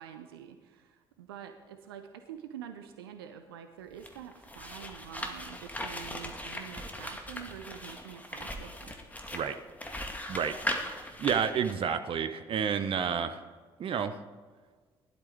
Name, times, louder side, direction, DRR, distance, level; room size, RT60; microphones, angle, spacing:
voice 1, 0.0-8.9, right 9 dB, 75° right, 8 dB, 0.7 m, -46 dB
sound 1, 3.9-11.7, left 1 dB, 10° left, 1.9 m, -39 dB
voice 2, 11.0-13.4 13.8-14.2, right 7 dB, 45° right, 9 dB, 0.9 m, -30 dB
18.0 x 12.0 x 3.5 m, 1.5 s
figure-of-eight pair, 45°, 13 cm